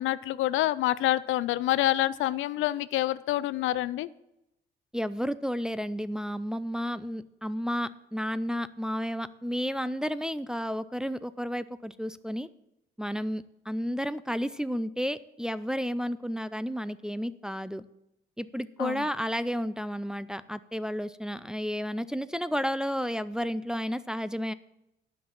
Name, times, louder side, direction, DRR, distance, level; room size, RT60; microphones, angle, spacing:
voice 1, 0.0-4.1 18.8-19.1, left 14 dB, 85° left, 16 dB, 0.4 m, -27 dB
voice 2, 4.9-12.5 13.0-17.8 18.4-24.5, equal, 5° right, 13 dB, 0.4 m, -32 dB
10.0 x 6.0 x 7.2 m, 0.87 s
cardioid pair, 90°, 20 cm